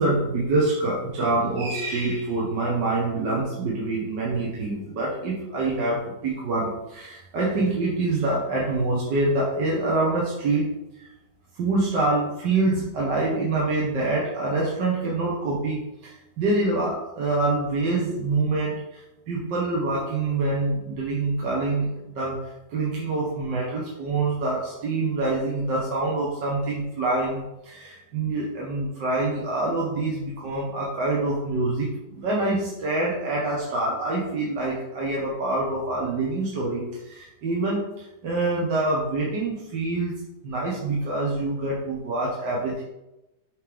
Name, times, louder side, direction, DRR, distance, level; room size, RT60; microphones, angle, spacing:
voice 1, 0.0-10.7 10.9-11.1 11.6-40.1 40.4-42.8, right 2 dB, 70° right, -5 dB, 1.7 m, -26 dB
6.4 x 3.3 x 5.3 m, 0.93 s
omnidirectional pair, 2.0 m